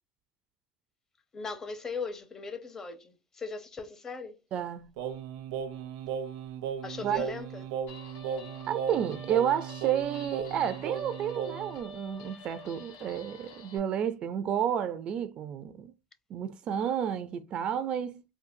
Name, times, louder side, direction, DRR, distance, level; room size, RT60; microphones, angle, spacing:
voice 1, 1.3-4.4 6.8-7.7, left 4 dB, 20° left, 0.6 m, -39 dB
voice 2, 4.5-4.9 7.0-7.2 8.7-15.9 16.3-18.2, right 9 dB, 40° right, 0.3 m, -31 dB
Singing, 5.0-11.8, right 7 dB, 80° right, 0.6 m, -36 dB
Guitar, 7.9-13.8, left 2 dB, 75° left, 1.1 m, -48 dB
3.8 x 2.2 x 2.5 m
supercardioid pair, 130°, 3 cm